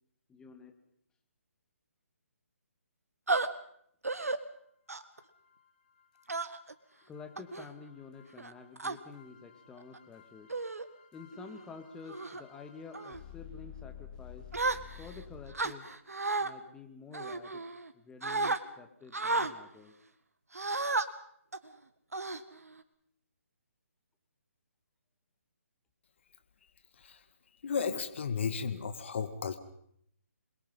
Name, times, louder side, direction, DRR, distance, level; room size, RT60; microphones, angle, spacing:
voice 1, 0.3-0.7 7.1-10.5 11.1-14.5 15.0-15.9 16.4-17.6 17.9-19.9, left 4 dB, 10° left, 6 dB, 2.1 m, -49 dB
sound 1, 3.3-3.5 4.0-4.4 4.9-5.2 6.3-6.7 7.4-7.7 8.4-9.0 9.8-10.0 10.5-10.9 11.3-11.6 12.1-12.4 12.9-13.2 14.5-15.2 15.5-16.5 17.1-17.9 18.2-18.6 19.1-19.5 20.5-21.1 21.5-21.7 22.1-22.8, right 3 dB, 80° right, 1.8 m, -33 dB
sound 2, 5.1-15.5, left 8 dB, 35° left, 3.5 m, -53 dB
voice 2, 27.6-29.6, left 6 dB, 50° left, 10 dB, 2.1 m, -34 dB
28.0 x 22.5 x 5.6 m, 0.71 s
figure-of-eight pair, 145°, 8 cm